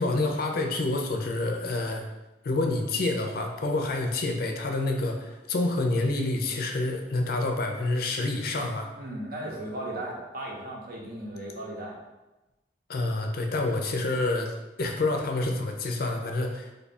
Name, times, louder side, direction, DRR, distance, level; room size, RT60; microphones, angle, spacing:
voice 1, 0.0-2.1 2.4-8.9 12.9-16.7, left 2 dB, 55° left, 3 dB, 0.5 m, -28 dB
voice 2, 8.9-12.0, right 1 dB, 55° right, -2 dB, 0.7 m, -36 dB
3.2 x 2.3 x 4.1 m, 1.0 s
head